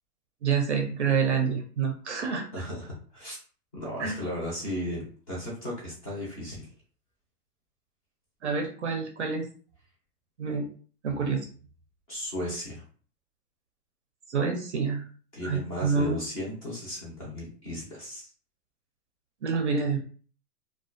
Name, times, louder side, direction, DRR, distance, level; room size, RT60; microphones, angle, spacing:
voice 1, 0.4-2.5 4.0-4.1 8.4-9.5 10.4-10.7 11.0-11.4 14.3-15.0 15.4-16.2 19.4-20.0, right 5 dB, 50° right, 3 dB, 0.4 m, -27 dB
voice 2, 2.5-3.4 3.7-6.7 12.1-12.8 15.3-18.3, left 1 dB, 25° left, -5 dB, 0.5 m, -35 dB
2.3 x 2.3 x 2.4 m, 0.41 s
hypercardioid pair, 155°, 48 cm